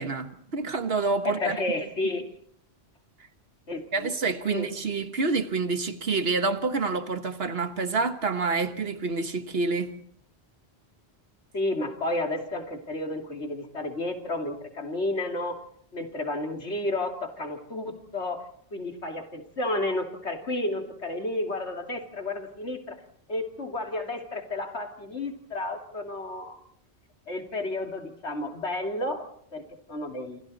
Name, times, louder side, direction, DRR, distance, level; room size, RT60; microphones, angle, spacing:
voice 1, 0.0-1.6 3.9-9.9, right 4 dB, 65° right, 1.7 m, -28 dB
voice 2, 1.2-2.3 3.7-4.1 4.5-4.9 11.5-15.6 15.9-23.0 23.3-26.6 27.3-29.3 29.5-29.6 29.9-30.4, left 2 dB, 85° left, 2.9 m, -31 dB
28.5 x 26.5 x 4.2 m
omnidirectional pair, 1.1 m